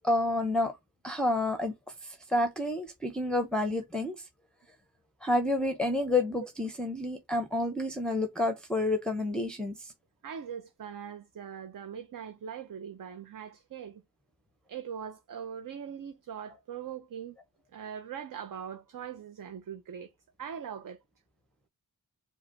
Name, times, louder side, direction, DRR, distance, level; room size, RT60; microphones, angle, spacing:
voice 1, 0.0-0.7 1.0-1.7 2.0-4.1 5.2-9.9, left 2 dB, ahead, 0.7 m, -29 dB
voice 2, 10.2-14.0 14.7-17.4 17.7-20.1 20.4-21.0, right 8 dB, 55° right, 0.7 m, -41 dB
4.8 x 2.3 x 4.2 m
cardioid pair, 60°, 38 cm